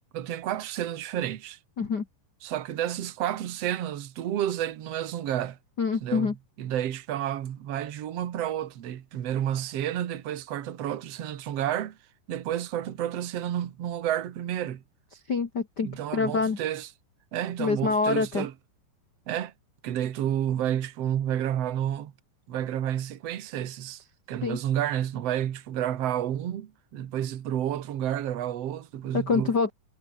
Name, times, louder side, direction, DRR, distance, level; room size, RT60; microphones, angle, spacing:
voice 1, 0.1-1.6 2.4-5.6 6.0-12.0 12.3-14.8 15.8-16.9 17.3-18.5 19.3-19.5 19.8-22.1 22.5-29.5, right 11 dB, 75° right, 1.4 m, -30 dB
voice 2, 5.8-6.3 15.3-16.6 17.6-18.4 24.4-24.6 29.1-29.7, left 4 dB, 65° left, 1.0 m, -26 dB
omnidirectional pair, 5.2 m